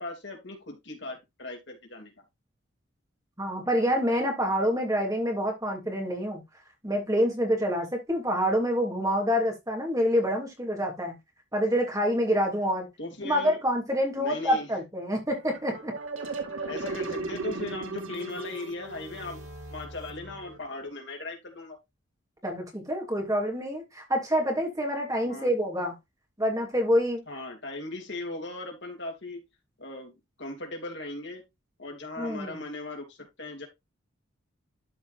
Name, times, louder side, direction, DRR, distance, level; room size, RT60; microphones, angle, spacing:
voice 1, 0.0-2.1 13.0-13.6 14.2-14.7 16.6-19.4 19.7-21.8 25.2-25.5 27.3-29.4 29.8-30.1 30.4-31.4 31.8-33.7, left 2 dB, 60° left, 3.0 m, -38 dB
voice 2, 3.4-6.4 6.8-11.2 11.5-12.9 13.2-15.9 22.4-25.9 26.4-27.2 32.2-32.6, equal, 15° right, 2.9 m, -27 dB
sound 1, 15.4-20.8, right 3 dB, 85° right, 2.5 m, -37 dB
13.0 x 5.1 x 2.6 m
head